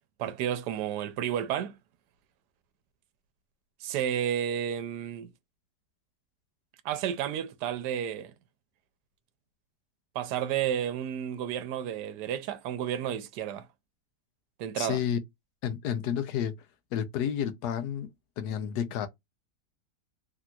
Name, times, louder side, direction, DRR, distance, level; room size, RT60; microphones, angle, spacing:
voice 1, 0.2-1.7 3.8-5.3 6.8-8.3 10.1-13.7 14.6-15.0, right 10 dB, 80° right, 1.2 m, -31 dB
voice 2, 14.8-15.2 15.6-16.5 16.9-18.1 18.4-19.1, left 9 dB, 75° left, 1.2 m, -30 dB
3.4 x 2.8 x 2.3 m
omnidirectional pair, 1.8 m